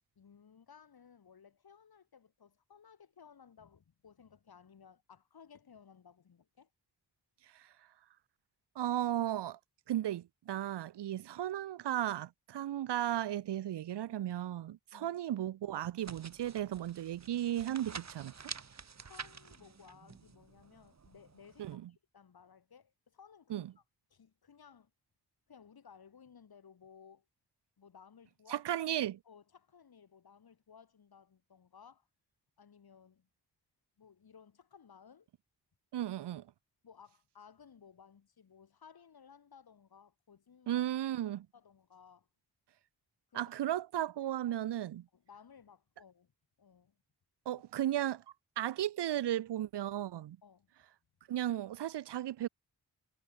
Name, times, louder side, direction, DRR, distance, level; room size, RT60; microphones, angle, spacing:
voice 1, 0.0-6.7 14.9-15.2 19.0-23.8 24.1-24.9 25.5-27.2 27.8-28.6 29.2-32.1 32.6-33.3 34.0-35.3 36.8-40.8 41.5-42.3 43.3-43.5 45.1-46.3 46.6-47.0 50.4-50.7, left 7 dB, 65° left, 2.8 m, -59 dB
voice 2, 8.8-9.6 9.9-18.3 21.6-21.9 23.5-23.7 28.5-29.2 35.9-36.5 40.7-41.5 43.3-45.1 47.5-48.2 48.6-50.4 51.3-52.5, right 12 dB, 85° right, 0.8 m, -35 dB
sound 1, 16.0-21.7, right 5 dB, 40° right, 1.6 m, -49 dB
cardioid pair, 50°, 40 cm